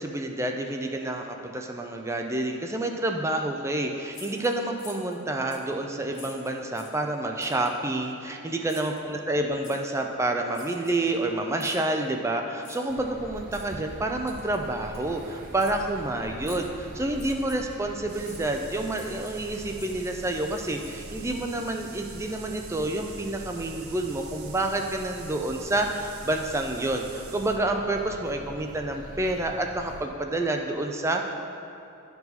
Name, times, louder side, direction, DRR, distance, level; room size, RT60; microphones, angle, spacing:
voice 1, 0.0-31.3, right 2 dB, 15° right, 3 dB, 0.4 m, -29 dB
sound 1, 4.1-5.2 5.5-5.7 6.1-7.0 7.4-7.8 8.7-9.0 9.6-9.8 10.5-11.2 11.6-11.9 12.6-13.0 13.5-13.7 14.3-14.6 14.9-15.1 15.6-15.8 16.4-16.7 17.1-17.7 18.2-18.4 18.9-19.5 19.7-21.2, left 3 dB, 80° left, 1.1 m, -47 dB
sound 2, 12.9-30.1, right 1 dB, 40° right, 0.8 m, -44 dB
sound 3, 18.1-27.6, right 6 dB, 75° right, 0.8 m, -47 dB
12.0 x 4.6 x 4.1 m, 2.9 s
head